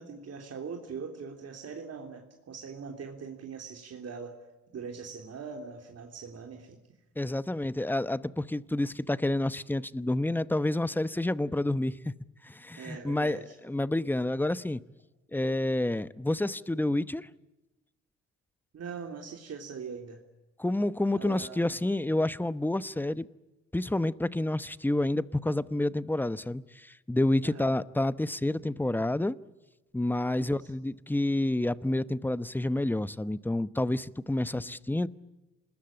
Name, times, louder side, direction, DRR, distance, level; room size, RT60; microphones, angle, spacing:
voice 1, 0.0-4.4 4.7-6.8 12.8-13.5 18.7-20.2 21.2-21.8 27.4-27.7 30.4-30.7 34.5-34.7, right 5 dB, 55° right, 3.4 m, -42 dB
voice 2, 7.2-12.1 12.4-13.4 13.6-14.8 15.3-17.3 20.6-23.3 23.7-29.3 29.9-35.1, left 1 dB, 5° left, 0.9 m, -29 dB
27.5 x 20.5 x 8.8 m
cardioid pair, 90°, 30 cm